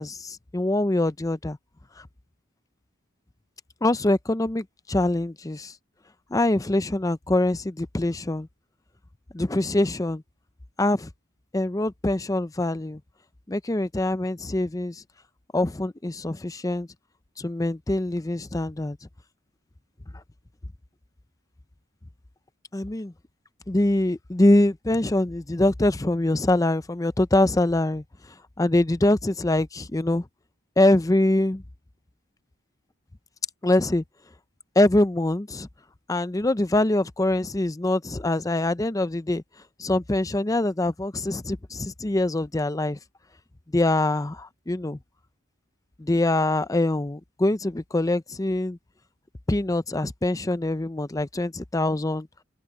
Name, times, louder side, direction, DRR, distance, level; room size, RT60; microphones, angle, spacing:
voice 1, 0.0-1.6 2.0-2.1 3.8-5.7 6.3-8.5 9.3-10.2 10.8-11.1 11.5-13.0 13.5-15.0 15.5-16.9 17.4-19.0 22.7-23.1 23.7-28.0 28.6-30.3 30.8-31.6 33.6-34.0 34.8-35.7 36.1-39.4 39.8-43.0 43.7-45.0 46.0-48.8 49.5-52.3, left 1 dB, 15° left, 0.6 m, -24 dB
open air
head